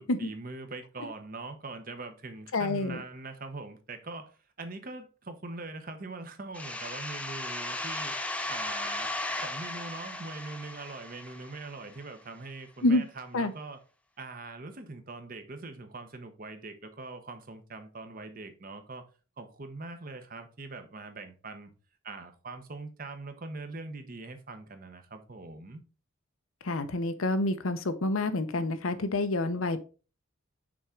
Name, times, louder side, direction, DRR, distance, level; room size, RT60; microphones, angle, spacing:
voice 1, 0.0-8.2 8.5-9.1 9.4-13.8 14.2-19.0 19.4-21.7 22.0-25.8, right 3 dB, 45° right, 0.9 m, -42 dB
voice 2, 2.5-3.0 12.8-13.0 13.3-13.5 26.6-29.8, left 2 dB, 80° left, 0.8 m, -28 dB
sound 1, 6.5-12.0, left 2 dB, 5° left, 0.5 m, -36 dB
6.1 x 3.6 x 4.4 m
head